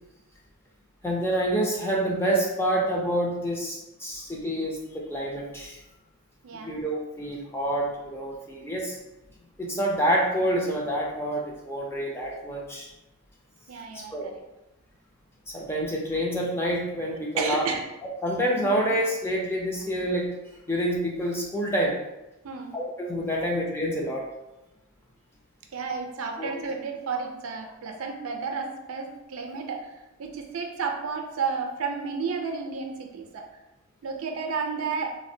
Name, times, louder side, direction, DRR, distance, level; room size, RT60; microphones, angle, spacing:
voice 1, 1.0-5.8 6.6-9.0 9.6-12.9 13.9-14.3 15.5-17.7 18.2-20.3 20.7-22.0 22.7-24.2 26.4-26.5, right 1 dB, 10° left, -2 dB, 0.4 m, -27 dB
voice 2, 6.4-6.8 13.7-14.4 17.4-17.8 18.5-18.8 22.4-22.7 25.7-29.9 30.2-33.5 34.0-35.2, right 5 dB, 70° right, 3 dB, 0.4 m, -32 dB
3.3 x 2.1 x 2.6 m, 0.96 s
head